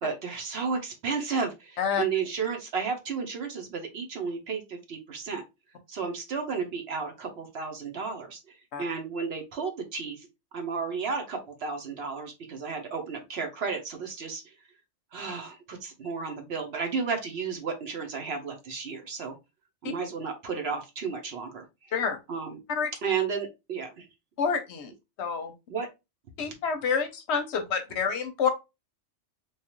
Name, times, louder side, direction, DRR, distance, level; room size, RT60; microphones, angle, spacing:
voice 1, 0.0-5.4 5.9-10.3 10.5-14.4 15.1-19.4 19.8-21.6 22.3-22.6 23.0-24.0 25.7-25.9, right 5 dB, 60° right, 0.9 m, -33 dB
voice 2, 24.4-24.9 25.2-25.5 26.4-28.5, left 6 dB, 70° left, 0.8 m, -28 dB
3.1 x 2.3 x 2.9 m
omnidirectional pair, 1.3 m